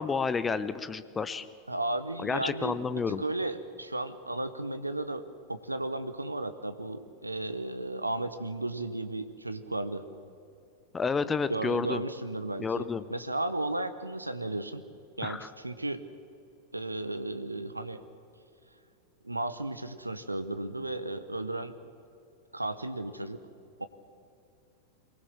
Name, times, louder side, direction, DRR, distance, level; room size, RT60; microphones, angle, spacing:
voice 1, 0.0-1.4 2.2-3.2 10.9-12.0 12.6-13.0 15.2-15.5, left 5 dB, 15° left, 14 dB, 0.9 m, -30 dB
voice 2, 1.7-10.1 11.5-14.8 15.2-16.0 16.7-18.0 19.2-21.7 22.5-23.4 23.8-23.9, right 2 dB, 85° right, 12 dB, 0.9 m, -34 dB
23.0 x 19.5 x 7.4 m, 2.4 s
figure-of-eight pair, 90°, 0 cm